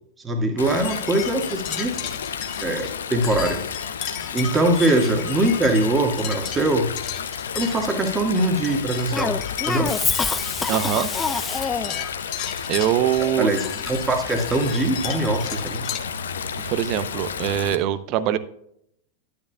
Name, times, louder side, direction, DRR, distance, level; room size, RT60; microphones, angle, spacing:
voice 1, 0.2-2.1 2.6-3.6 4.3-6.9 7.5-9.4 9.7-9.9 13.4-15.8, right 2 dB, 15° right, 3 dB, 1.8 m, -22 dB
Stream, 0.6-17.7, left 7 dB, 65° left, 0.6 m, -32 dB
sound 1, 0.7-16.0, left 10 dB, 40° left, 1.1 m, -35 dB
Cough, 9.1-12.1, left 4 dB, 15° left, 0.5 m, -25 dB
voice 2, 10.7-11.1 12.7-13.5 16.7-18.4, right 11 dB, 40° right, 14 dB, 0.6 m, -22 dB
11.5 x 9.7 x 2.3 m, 0.73 s
figure-of-eight pair, 90°, 0 cm